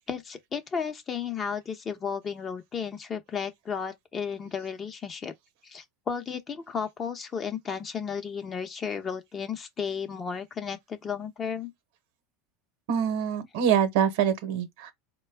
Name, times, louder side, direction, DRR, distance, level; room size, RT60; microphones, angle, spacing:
voice 1, 0.0-5.3 5.6-11.7, left 6 dB, 30° left, 0.7 m, -33 dB
voice 2, 12.9-14.9, right 8 dB, 75° right, 0.9 m, -25 dB
4.2 x 2.2 x 3.3 m
supercardioid pair, 115°, 0 cm